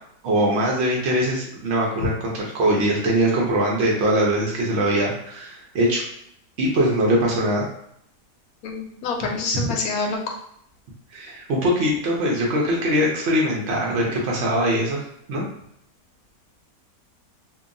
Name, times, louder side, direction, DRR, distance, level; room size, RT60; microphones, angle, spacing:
voice 1, 0.2-6.0 6.6-7.6 9.5-9.7 11.1-15.0 15.3-15.4, right 1 dB, 80° right, -2 dB, 0.6 m, -22 dB
voice 2, 8.6-10.4, left 4 dB, 70° left, 1 dB, 0.9 m, -27 dB
2.7 x 2.2 x 2.5 m, 0.71 s
omnidirectional pair, 1.8 m